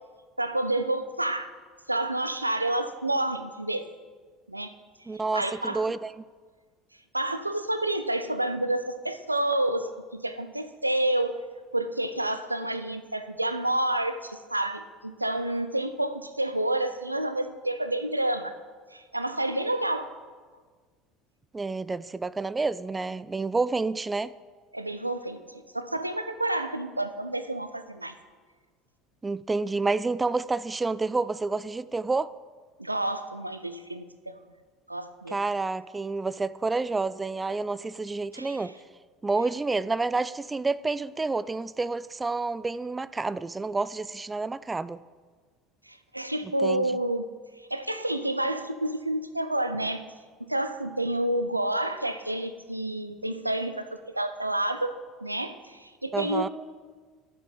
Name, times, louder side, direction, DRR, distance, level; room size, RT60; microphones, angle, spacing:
voice 1, 0.4-1.5 1.9-3.9 4.5-4.7 5.3-5.8 7.1-11.4 11.7-18.5 18.9-20.1 24.7-28.1 32.8-34.4 34.9-35.4 38.3-38.6 45.9-47.3 47.7-50.0 50.5-56.5, right 1 dB, 90° right, 0.6 m, -29 dB
voice 2, 5.1-6.1 21.5-24.3 29.2-32.3 35.3-38.7 39.2-45.0 46.6-46.9 56.1-56.5, right 3 dB, 15° right, 0.3 m, -29 dB
11.5 x 7.4 x 7.7 m
figure-of-eight pair, 65°, 0 cm